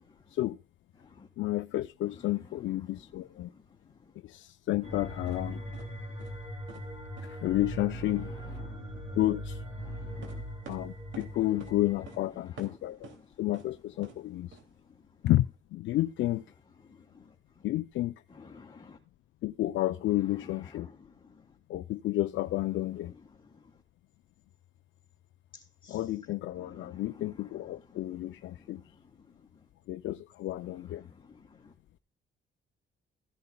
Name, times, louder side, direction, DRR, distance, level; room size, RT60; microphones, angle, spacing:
voice 1, 1.4-3.5 4.2-5.6 7.2-8.3 9.1-9.6 10.7-14.6 15.2-16.4 17.6-18.2 19.4-20.9 21.7-23.1 25.9-28.8 29.9-31.1, left 15 dB, 75° left, 0.5 m, -31 dB
sound 1, 4.8-12.1, equal, 35° right, 4.8 m, -40 dB
sound 2, 5.3-5.4 5.7-5.9 6.2-6.4 6.7-6.9 7.2-7.3 10.2-11.3 11.6-11.8 12.1-12.2 12.6-13.2 13.5-13.7 14.0-14.2 14.5-14.6, right 5 dB, 75° right, 2.4 m, -48 dB
voice 2, 9.8-10.4 18.5-19.0 25.8-26.0, left 4 dB, 25° left, 1.9 m, -52 dB
15.5 x 11.0 x 2.2 m
cardioid pair, 90°, 20 cm